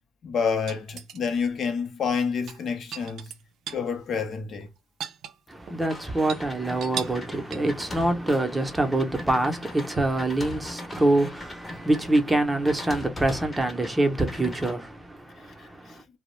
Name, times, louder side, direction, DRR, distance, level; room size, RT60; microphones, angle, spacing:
voice 1, 0.2-3.3 3.7-4.7 15.6-15.9, left 6 dB, 60° left, 0.6 m, -28 dB
sound 1, 0.7-1.5 2.4-3.9 4.2-4.3 4.6-5.8 6.2-6.4 6.8-7.3 7.5-7.8 10.0-10.3 12.0-12.1, right 7 dB, 75° right, 0.4 m, -37 dB
voice 2, 5.5-16.0, right 2 dB, 15° right, 0.6 m, -25 dB
sound 2, 5.8-12.2 12.6-13.9 14.2-14.7, left 2 dB, 30° left, 0.7 m, -40 dB
2.2 x 2.0 x 3.0 m
cardioid pair, 90°, 0 cm